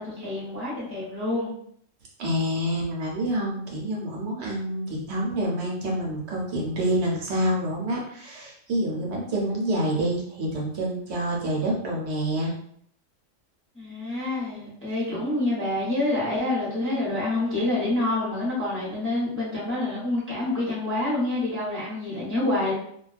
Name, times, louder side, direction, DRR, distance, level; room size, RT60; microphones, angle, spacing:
voice 1, 0.0-1.5 13.7-22.7, left 2 dB, 10° left, -8 dB, 0.7 m, -27 dB
voice 2, 2.2-12.5, right 1 dB, 60° right, -2 dB, 0.9 m, -27 dB
2.2 x 2.2 x 2.4 m, 0.66 s
omnidirectional pair, 1.4 m